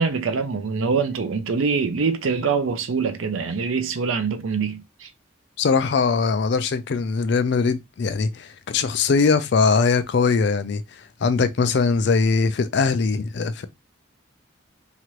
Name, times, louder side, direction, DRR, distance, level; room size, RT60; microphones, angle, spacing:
voice 1, 0.0-5.1, right 5 dB, 90° right, 0.5 m, -24 dB
voice 2, 5.6-10.8 11.2-13.7, left 4 dB, 60° left, 0.4 m, -21 dB
2.9 x 2.5 x 3.0 m
head